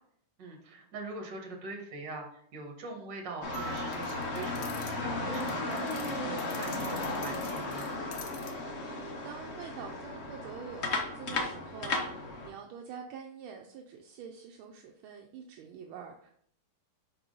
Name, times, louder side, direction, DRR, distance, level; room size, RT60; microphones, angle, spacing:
voice 1, 0.4-7.9, right 3 dB, 60° right, 1 dB, 1.9 m, -42 dB
sound 1, 3.4-12.5, left 2 dB, 50° left, 0.8 m, -35 dB
sound 2, 3.5-6.1 7.7-7.8, right 6 dB, 25° right, 2.3 m, -49 dB
sound 3, 3.7-5.0 5.3-8.5, left 9 dB, 70° left, 1.1 m, -48 dB
voice 2, 8.8-16.3, right 6 dB, 80° right, 2 dB, 1.5 m, -46 dB
5.5 x 4.7 x 3.8 m, 0.64 s
omnidirectional pair, 2.3 m